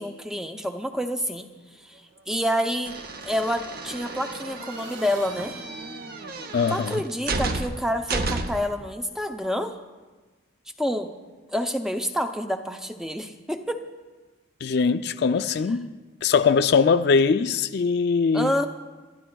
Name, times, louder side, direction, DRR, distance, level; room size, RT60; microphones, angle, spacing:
voice 1, 0.0-1.5 1.8-2.0 2.3-2.9 3.2-5.6 6.7-9.8 10.8-11.1 11.5-13.8 18.3-18.7, equal, 5° right, 0.5 m, -28 dB
Motorcycle / Engine, 0.9-1.0 1.3-8.4, right 3 dB, 75° right, 1.2 m, -46 dB
sound 1, 2.9-8.8, right 3 dB, 50° right, 0.7 m, -32 dB
voice 2, 6.5-7.0 14.6-15.9 16.2-18.5, left 5 dB, 55° left, 0.4 m, -21 dB
28.5 x 12.5 x 2.3 m
head